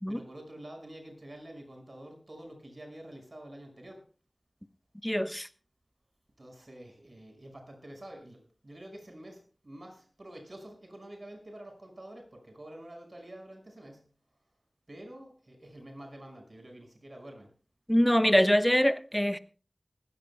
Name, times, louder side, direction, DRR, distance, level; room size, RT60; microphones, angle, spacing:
voice 1, 0.1-4.1 6.4-14.0 14.9-17.5, right 1 dB, 60° right, 5.5 m, -48 dB
voice 2, 5.0-5.5 17.9-19.4, equal, 10° left, 1.1 m, -24 dB
20.0 x 16.0 x 2.2 m
wide cardioid pair, 40°, 0 cm